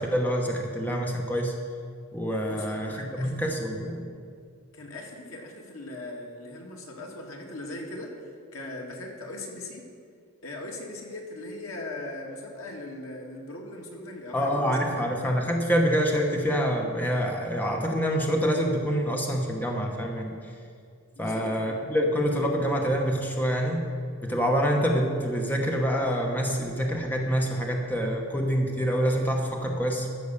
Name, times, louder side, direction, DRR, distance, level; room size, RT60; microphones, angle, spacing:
voice 1, 0.0-1.6 2.1-4.1 14.3-20.5 21.2-23.9 24.2-30.1, equal, 10° left, 1 dB, 1.0 m, -26 dB
voice 2, 2.4-3.5 4.7-8.2 8.5-9.9 10.4-15.0 21.2-21.5, left 2 dB, 80° left, 0 dB, 1.8 m, -39 dB
13.5 x 6.1 x 6.6 m, 2.3 s
head